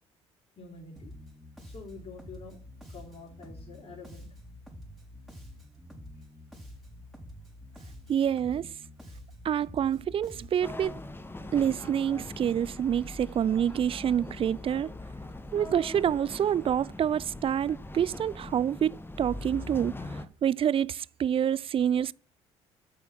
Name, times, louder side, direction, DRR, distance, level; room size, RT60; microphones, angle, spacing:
voice 1, 0.6-1.1 1.6-2.6 2.9-4.3, left 3 dB, 45° left, 3.8 m, -47 dB
Bass guitar, 1.0-10.8, left 1 dB, ahead, 4.6 m, -48 dB
voice 2, 8.1-8.7 9.4-11.0 11.5-14.9 15.5-19.9 20.4-22.1, right 9 dB, 40° right, 0.4 m, -27 dB
sound 1, 10.6-20.3, left 2 dB, 15° left, 1.1 m, -41 dB
8.3 x 7.0 x 6.4 m
hypercardioid pair, 60°, 14 cm